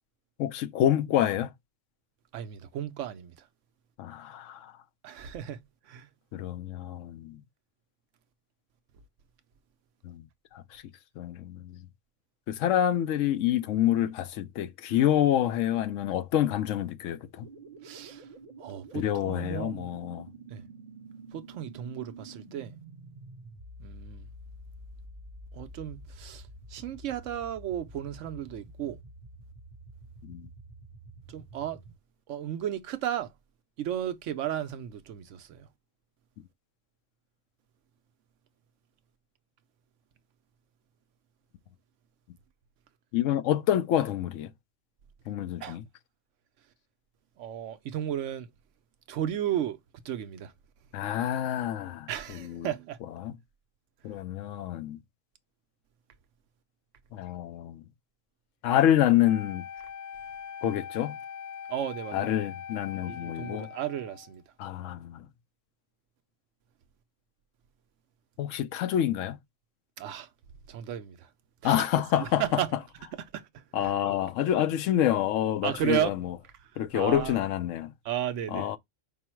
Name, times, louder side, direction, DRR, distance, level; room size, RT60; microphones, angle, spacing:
voice 1, 0.4-1.5 4.0-4.7 6.3-7.4 10.0-10.2 10.5-10.8 11.2-11.8 12.5-17.5 18.9-20.3 30.2-30.5 43.1-44.5 45.3-45.8 50.9-52.7 53.2-53.4 54.0-55.0 57.1-57.8 58.6-59.6 60.6-61.2 62.1-63.7 64.6-65.3 68.4-69.4 71.6-72.6 73.7-76.4 76.8-77.9 78.5-78.8, left 11 dB, 85° left, 1.0 m, -27 dB
voice 2, 2.3-3.3 5.0-5.6 5.9-6.1 17.8-18.3 18.6-19.9 20.5-20.6 21.3-22.7 23.8-24.3 25.5-26.4 26.7-29.0 31.3-31.8 32.3-33.3 33.8-35.7 45.6-45.8 47.4-48.5 49.1-49.8 50.0-50.5 52.1-53.0 61.7-62.3 63.0-64.4 70.0-70.3 70.7-71.3 71.6-71.9 72.1-72.7 73.3-73.9 75.6-76.1 76.7-77.4 78.0-78.8, right 10 dB, 80° right, 1.0 m, -34 dB
sound 1, 17.4-31.9, right 2 dB, 40° right, 1.0 m, -48 dB
Wind instrument woodwind instrument, 59.2-64.3, left 8 dB, 60° left, 0.5 m, -42 dB
5.3 x 2.1 x 4.3 m
omnidirectional pair, 1.3 m